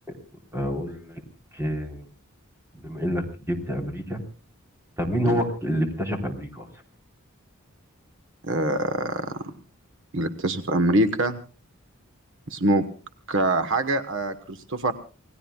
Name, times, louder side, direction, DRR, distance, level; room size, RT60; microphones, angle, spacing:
voice 1, 0.5-1.2 1.5-2.0 2.8-4.2 5.0-6.7, equal, 10° right, 3 dB, 3.8 m, -28 dB
voice 2, 8.4-9.5 10.1-11.4 12.5-12.9 13.3-14.9, right 1 dB, 65° right, 10 dB, 1.2 m, -24 dB
28.5 x 18.5 x 2.3 m, 0.37 s
head